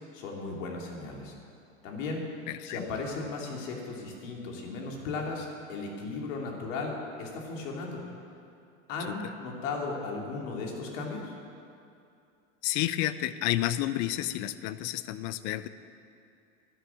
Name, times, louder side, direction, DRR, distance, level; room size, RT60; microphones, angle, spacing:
voice 1, 0.1-1.3 1.8-2.2 2.6-8.0 8.9-11.3, left 3 dB, 65° left, 0 dB, 3.2 m, -36 dB
voice 2, 2.5-2.8 9.1-9.2 12.6-15.7, left 14 dB, 40° left, 14 dB, 0.7 m, -30 dB
11.5 x 11.0 x 7.3 m, 2.5 s
hypercardioid pair, 110°, 41 cm